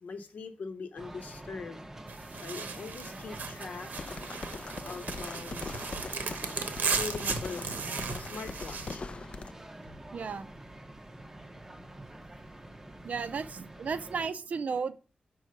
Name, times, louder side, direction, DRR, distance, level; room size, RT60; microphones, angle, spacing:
voice 1, 0.0-1.8 2.4-3.9 4.8-5.7 6.9-7.7 8.1-9.1, left 4 dB, 70° left, 8 dB, 0.9 m, -42 dB
sound 1, 1.0-14.3, right 1 dB, 15° right, 0.6 m, -47 dB
sound 2, 2.1-9.0, right 5 dB, 85° right, 1.1 m, -36 dB
sound 3, 4.0-9.5, left 3 dB, 40° left, 0.4 m, -41 dB
voice 2, 10.1-10.5 13.0-14.9, right 5 dB, 60° right, 12 dB, 0.5 m, -34 dB
5.5 x 4.7 x 6.4 m, 0.36 s
wide cardioid pair, 150°, 3 cm